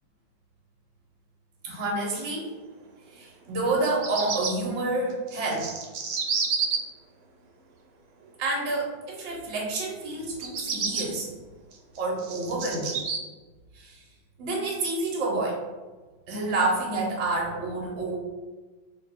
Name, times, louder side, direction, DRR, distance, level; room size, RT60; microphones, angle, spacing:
voice 1, 1.6-2.5 3.1-5.7 8.4-11.3 12.0-13.0 13.7-14.0 14.4-15.6 16.3-18.2, right 2 dB, 50° right, -3 dB, 1.0 m, -28 dB
Bird vocalization bird call bird song, 3.7-4.5 5.3-6.8 10.3-11.0 11.7-13.2, right 5 dB, 80° right, 1.3 m, -29 dB
2.6 x 2.5 x 4.1 m, 1.3 s
omnidirectional pair, 1.9 m